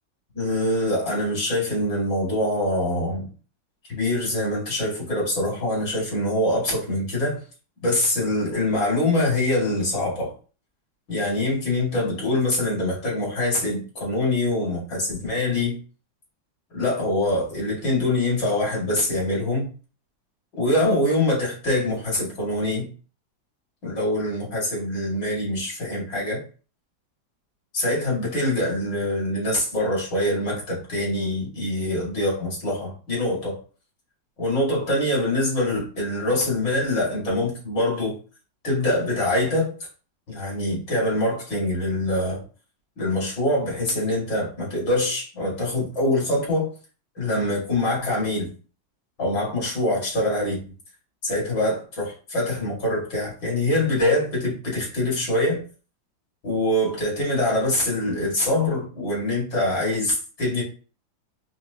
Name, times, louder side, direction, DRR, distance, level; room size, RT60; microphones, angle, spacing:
voice 1, 0.3-3.3 3.9-7.4 7.8-10.3 11.1-15.8 16.7-19.7 20.6-22.9 23.8-26.4 27.7-33.6 34.4-38.2 38.6-39.7 40.3-42.4 43.0-46.7 47.2-48.5 49.2-50.6 51.2-55.6 56.4-60.6, left 1 dB, 65° left, -5 dB, 2.9 m, -24 dB
5.2 x 3.0 x 2.8 m, 0.37 s
omnidirectional pair, 2.1 m